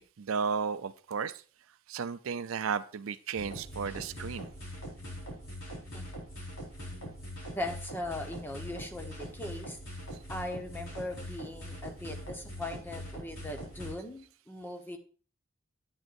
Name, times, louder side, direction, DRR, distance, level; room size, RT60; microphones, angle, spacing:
voice 1, 0.0-1.4 1.9-4.5, right 6 dB, 80° right, 14 dB, 0.5 m, -34 dB
sound 1, 3.4-13.9, equal, 70° left, 4.4 m, -42 dB
voice 2, 7.5-9.8 10.3-15.0, left 1 dB, 10° left, 3 dB, 1.0 m, -39 dB
10.5 x 8.9 x 2.6 m, 0.38 s
head